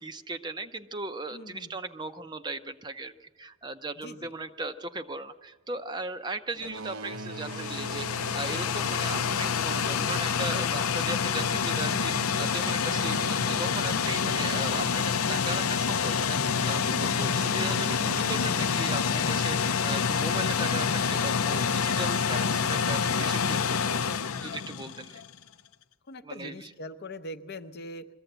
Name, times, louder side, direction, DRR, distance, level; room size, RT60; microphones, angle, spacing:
voice 1, 0.0-8.1 8.3-24.1 24.4-25.2 26.2-26.7, right 2 dB, 20° right, 9 dB, 0.6 m, -37 dB
voice 2, 1.3-1.7 4.0-4.3 26.1-28.1, left 1 dB, 50° left, 9 dB, 0.7 m, -42 dB
Boat Water vehicle, 6.5-15.9 16.7-18.3, right 3 dB, 80° right, 0.9 m, -43 dB
sound 1, 7.1-25.3, left 6 dB, 80° left, 0.6 m, -27 dB
22.0 x 15.0 x 8.0 m, 1.4 s
head